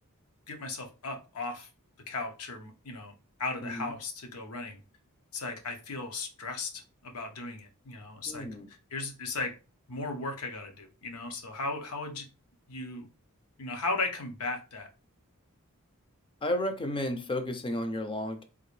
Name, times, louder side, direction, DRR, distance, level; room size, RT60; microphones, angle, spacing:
voice 1, 0.5-1.7 2.1-3.1 3.4-4.8 5.3-9.5 9.9-12.3 12.7-13.1 13.6-14.9, left 3 dB, 80° left, 0.8 m, -36 dB
voice 2, 8.3-8.7 16.4-18.4, left 1 dB, 25° left, 0.5 m, -32 dB
3.7 x 2.5 x 3.1 m
head